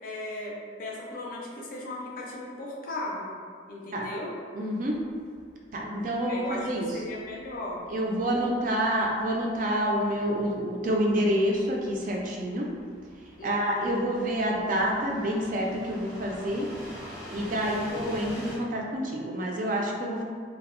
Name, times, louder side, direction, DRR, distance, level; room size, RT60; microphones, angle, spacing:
voice 1, 0.0-3.3 3.7-4.3 6.2-6.7 6.9-7.8 8.2-8.6 13.4-14.0 17.5-18.0, left 1 dB, 45° left, -3 dB, 0.4 m, -37 dB
voice 2, 4.5-5.0 5.7-6.9 7.9-12.7 13.4-16.7 17.3-20.2, equal, 45° right, -1 dB, 0.3 m, -28 dB
sound 1, 4.9-18.6, equal, 5° right, 0.6 m, -46 dB
2.1 x 2.0 x 3.5 m, 2.1 s
head